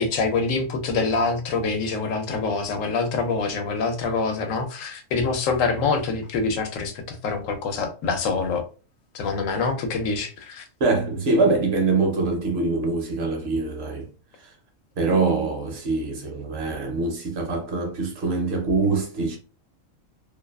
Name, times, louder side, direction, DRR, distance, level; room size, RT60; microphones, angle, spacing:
voice 1, 0.0-8.6 9.1-10.6, left 4 dB, 85° left, 1.0 m, -25 dB
voice 2, 10.8-14.1 15.0-19.4, right 3 dB, 60° right, 0.8 m, -24 dB
2.5 x 2.3 x 2.2 m
omnidirectional pair, 1.3 m